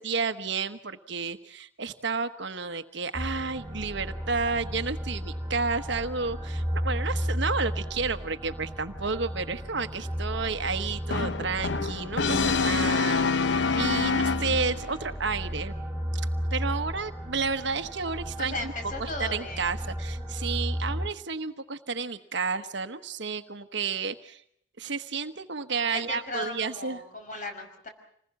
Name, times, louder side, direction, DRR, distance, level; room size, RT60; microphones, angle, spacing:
voice 1, 0.0-15.7 16.1-16.2 16.5-18.7 19.0-24.4 24.8-27.0, right 4 dB, 65° right, 8 dB, 1.2 m, -31 dB
sound 1, 3.1-21.1, equal, ahead, 6.1 m, -34 dB
Brass instrument, 11.1-14.9, left 4 dB, 60° left, 0.9 m, -26 dB
voice 2, 18.4-19.7 25.9-27.9, left 2 dB, 40° left, 6 dB, 5.7 m, -36 dB
27.0 x 20.5 x 7.2 m, 0.69 s
head